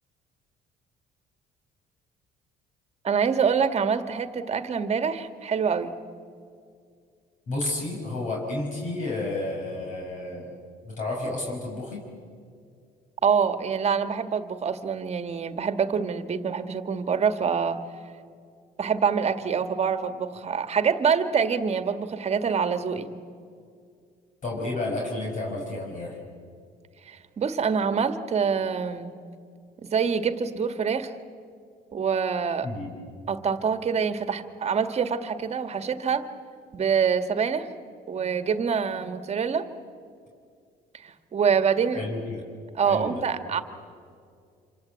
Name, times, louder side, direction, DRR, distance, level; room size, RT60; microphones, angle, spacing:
voice 1, 3.0-5.9 13.2-17.8 18.8-23.1 27.1-29.1 29.8-31.1 31.9-32.7 33.3-36.3 36.7-37.7 38.1-39.6 41.0-42.0 42.8-43.6, right 6 dB, 40° right, 9 dB, 1.8 m, -25 dB
voice 2, 7.5-10.5 10.8-12.0 24.4-26.2 32.6-32.9 41.9-42.4 42.9-43.2, left 2 dB, 50° left, -1 dB, 5.9 m, -31 dB
27.0 x 26.5 x 8.4 m, 2.2 s
cardioid pair, 110°, 17 cm